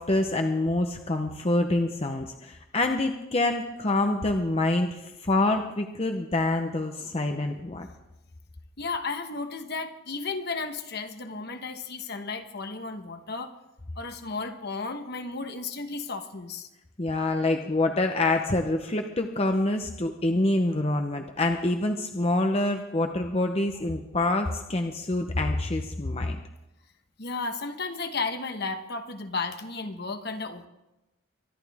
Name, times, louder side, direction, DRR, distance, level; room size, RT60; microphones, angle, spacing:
voice 1, 0.0-7.9 17.0-26.4, left 2 dB, 30° left, 4 dB, 0.8 m, -26 dB
voice 2, 8.8-13.5 14.0-16.7 27.2-30.7, left 4 dB, 50° left, 7 dB, 1.2 m, -34 dB
25.0 x 11.5 x 3.5 m, 0.94 s
head